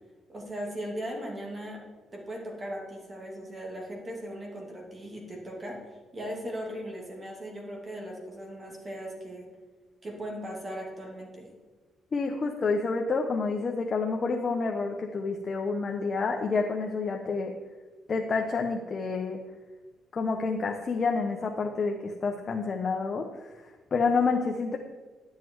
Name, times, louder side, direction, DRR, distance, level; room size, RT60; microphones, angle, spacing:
voice 1, 0.3-1.8 2.1-5.8 6.1-9.5 10.0-11.5, equal, 30° right, 0 dB, 2.7 m, -38 dB
voice 2, 12.1-17.5 18.1-19.4 20.1-23.5 23.9-24.8, left 4 dB, 40° left, 2 dB, 0.9 m, -28 dB
11.0 x 7.7 x 4.7 m, 1.3 s
cardioid pair, 90°, 0 cm